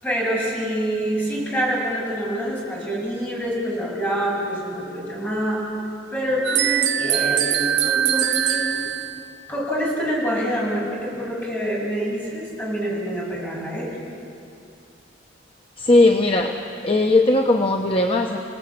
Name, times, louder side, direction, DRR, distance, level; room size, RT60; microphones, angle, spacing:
voice 1, 0.0-5.7 6.1-8.9 9.5-14.0, equal, 10° left, -4 dB, 7.7 m, -26 dB
sound 1, 6.4-9.3, right 10 dB, 70° right, 0.8 m, -22 dB
voice 2, 15.8-16.6 16.8-18.4, left 2 dB, 30° left, 3 dB, 1.1 m, -18 dB
29.5 x 18.5 x 8.8 m, 2.5 s
head